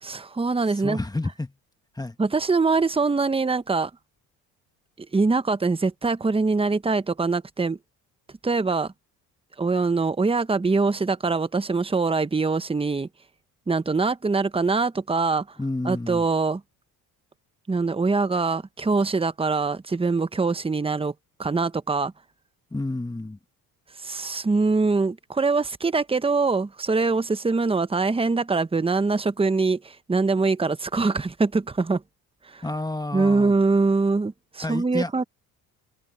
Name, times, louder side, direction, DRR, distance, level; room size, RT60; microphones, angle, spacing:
voice 1, 0.0-1.0 2.2-3.9 5.1-7.8 8.4-8.9 9.6-13.1 13.7-15.6 15.8-16.6 17.7-21.1 21.4-22.1 24.0-32.0 32.5-32.6 33.1-35.2, right 4 dB, 15° right, 1.1 m, -23 dB
voice 2, 0.8-1.5 1.9-2.1 15.6-16.2 22.7-23.4 32.6-33.5 34.6-35.1, left 2 dB, 10° left, 1.6 m, -30 dB
supercardioid pair, 80°, 39 cm